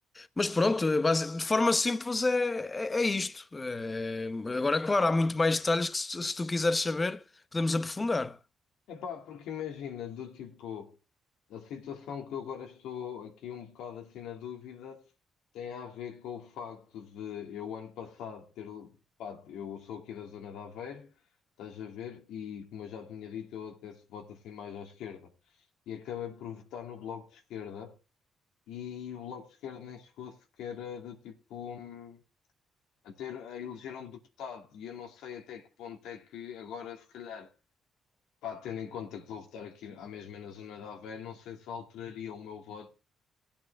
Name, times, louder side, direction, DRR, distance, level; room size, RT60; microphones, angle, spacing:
voice 1, 0.1-7.2 7.5-8.4, left 3 dB, 25° left, 1.0 m, -28 dB
voice 2, 8.9-10.9 11.5-15.0 15.5-18.9 19.2-21.1 21.6-25.3 25.9-28.0 28.7-32.2 33.0-37.5 38.4-42.9, left 8 dB, 90° left, 2.6 m, -41 dB
17.0 x 8.6 x 3.4 m
cardioid pair, 90°, 0 cm